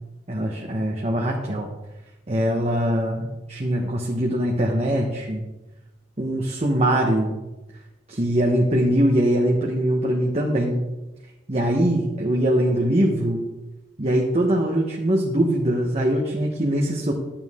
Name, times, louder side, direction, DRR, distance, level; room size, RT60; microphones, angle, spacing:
voice 1, 0.3-1.7 2.3-5.4 6.2-7.4 8.1-10.8 11.5-13.4 14.0-17.1, right 1 dB, 35° right, -1 dB, 1.1 m, -22 dB
11.5 x 8.7 x 3.6 m, 1.1 s
head